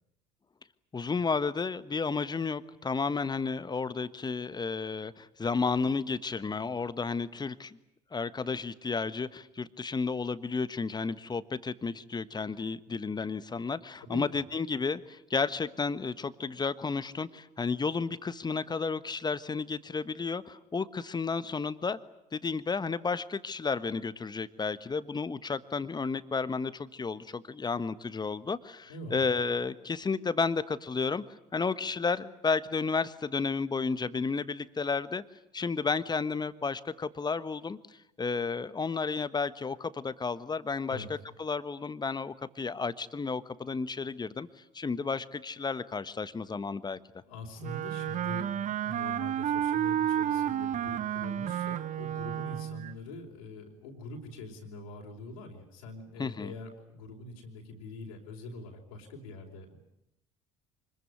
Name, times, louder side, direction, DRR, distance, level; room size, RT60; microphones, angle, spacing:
voice 1, 0.9-7.8 8.1-22.0 22.3-31.2 31.5-35.2 35.5-41.0 41.4-44.5 44.7-47.0 56.2-56.5, left 4 dB, 25° left, 15 dB, 1.3 m, -32 dB
voice 2, 28.9-29.2 40.9-41.1 47.2-59.8, left 2 dB, 80° left, -1 dB, 4.6 m, -44 dB
Wind instrument woodwind instrument, 47.6-52.9, right 10 dB, 45° right, 1.0 m, -31 dB
25.0 x 21.5 x 9.4 m, 0.81 s
hypercardioid pair, 60°, 17 cm